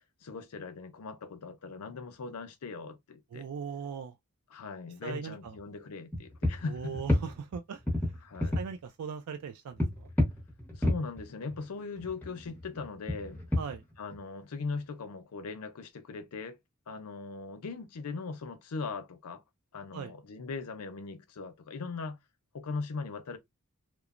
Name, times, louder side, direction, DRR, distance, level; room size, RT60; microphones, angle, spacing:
voice 1, 0.2-3.5 4.5-7.0 8.2-8.6 10.7-13.4 14.0-16.6 16.9-19.4 19.7-22.2 22.5-23.4, left 4 dB, 85° left, 0.6 m, -39 dB
voice 2, 3.3-4.2 5.0-5.5 6.7-8.1 8.6-10.1 13.6-13.8 19.9-20.1, right 6 dB, 80° right, 0.4 m, -39 dB
sound 1, 5.5-5.6 6.1-7.6 7.9-8.7 9.8-11.7 12.0-14.2, left 1 dB, 10° left, 0.8 m, -30 dB
3.0 x 2.0 x 2.4 m
head